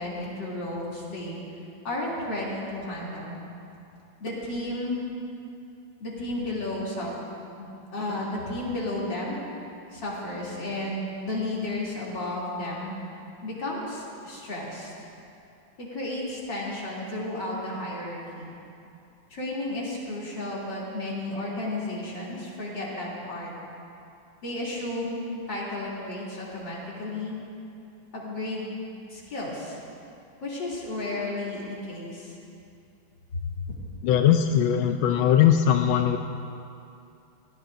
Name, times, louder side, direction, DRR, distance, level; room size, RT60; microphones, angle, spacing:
voice 1, 0.0-1.4 1.8-3.4 4.2-5.0 6.0-7.1 7.6-9.4 9.9-13.0 13.4-14.9 15.8-18.5 19.3-23.5 24.4-27.4 28.1-28.7 29.1-29.8 30.4-32.3 33.3-33.7, left 1 dB, 65° left, -6 dB, 3.8 m, -33 dB
voice 2, 34.0-36.2, left 9 dB, 90° left, 5 dB, 1.4 m, -20 dB
21.5 x 17.5 x 2.6 m, 2.7 s
omnidirectional pair, 2.1 m